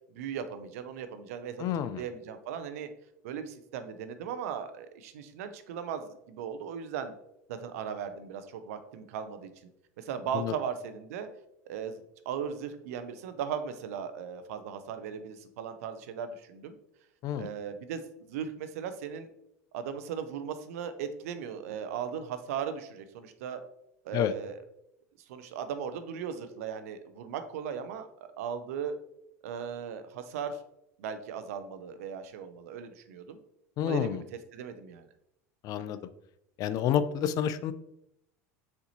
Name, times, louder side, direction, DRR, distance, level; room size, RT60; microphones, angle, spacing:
voice 1, 0.1-1.7 2.0-2.9 3.2-7.1 7.5-9.5 10.0-11.3 11.7-16.7 17.4-18.0 18.3-19.3 19.7-23.6 24.0-24.6 25.3-28.1 28.4-28.9 29.4-30.6 31.0-33.4 33.8-35.1, right 7 dB, 75° right, 9 dB, 0.5 m, -37 dB
voice 2, 1.6-2.0 10.3-10.5 17.2-17.5 24.1-24.3 33.8-34.2 35.6-36.0 36.6-37.7, left 9 dB, 50° left, 13 dB, 0.4 m, -29 dB
4.3 x 3.9 x 2.8 m, 0.79 s
hypercardioid pair, 90°, 8 cm